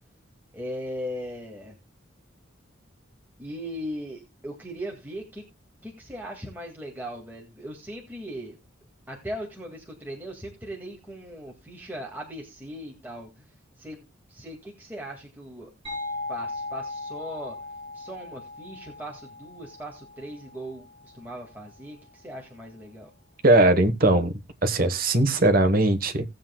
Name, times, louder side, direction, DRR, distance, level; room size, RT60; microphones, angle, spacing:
voice 1, 0.5-1.8 3.4-5.4 5.8-8.6 9.1-15.7 16.3-17.6 17.9-23.1, equal, 10° right, 2.0 m, -38 dB
sound 1, 15.8-21.3, left 2 dB, 30° right, 7.9 m, -38 dB
voice 2, 23.4-24.3 24.6-26.2, right 2 dB, 45° right, 1.2 m, -20 dB
18.0 x 7.6 x 2.2 m
head